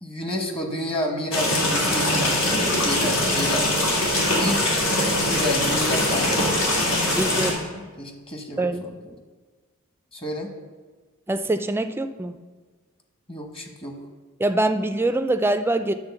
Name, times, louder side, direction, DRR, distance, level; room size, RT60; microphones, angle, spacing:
voice 1, 0.0-3.7 4.4-6.6 7.1-8.9 10.1-10.5 13.3-14.0, equal, 25° left, 3 dB, 1.1 m, -31 dB
sound 1, 1.3-7.5, left 1 dB, 80° left, 2.3 m, -22 dB
voice 2, 7.1-7.5 8.6-9.0 11.3-12.4 14.4-15.9, right 2 dB, 10° right, 9 dB, 0.4 m, -24 dB
10.5 x 3.8 x 7.0 m, 1.4 s
head